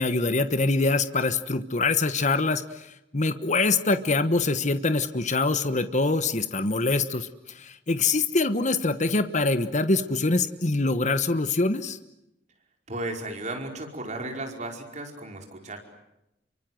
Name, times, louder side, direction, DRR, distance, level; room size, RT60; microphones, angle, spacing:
voice 1, 0.0-2.6 3.1-7.3 7.5-12.0, left 3 dB, 45° left, 11 dB, 1.2 m, -24 dB
voice 2, 12.9-15.8, right 2 dB, 45° right, 3 dB, 5.1 m, -34 dB
30.0 x 24.5 x 7.8 m, 0.86 s
head